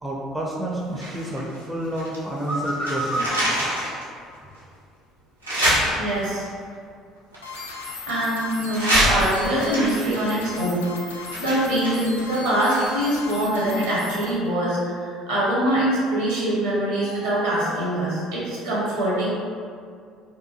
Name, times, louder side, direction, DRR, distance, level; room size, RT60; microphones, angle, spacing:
voice 1, 0.0-3.6, right 1 dB, 10° right, -4 dB, 0.4 m, -28 dB
sound 1, 1.0-2.2 2.5-4.0 4.5-4.6 5.4-6.4 7.3-8.3 8.7-13.1 13.4-13.5, equal, 85° right, 0.5 m, -26 dB
voice 2, 6.0-6.5 8.1-19.3, right 1 dB, 65° right, -7 dB, 0.8 m, -24 dB
sound 2, 7.4-14.3, left 3 dB, 75° left, 0.3 m, -37 dB
2.6 x 2.2 x 2.8 m, 2.2 s
figure-of-eight pair, 55°, 0 cm